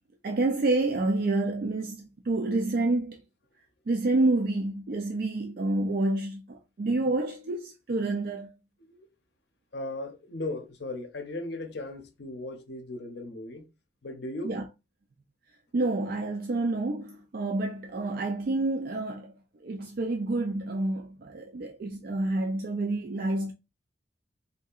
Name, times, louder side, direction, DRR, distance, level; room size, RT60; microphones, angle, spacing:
voice 1, 0.2-3.2 3.9-8.5 14.4-14.6 15.7-19.3 19.6-23.5, right 2 dB, 50° right, 0.4 m, -28 dB
voice 2, 9.7-13.7 14.0-14.6, left 2 dB, 60° left, 0.7 m, -37 dB
3.7 x 2.7 x 2.4 m
head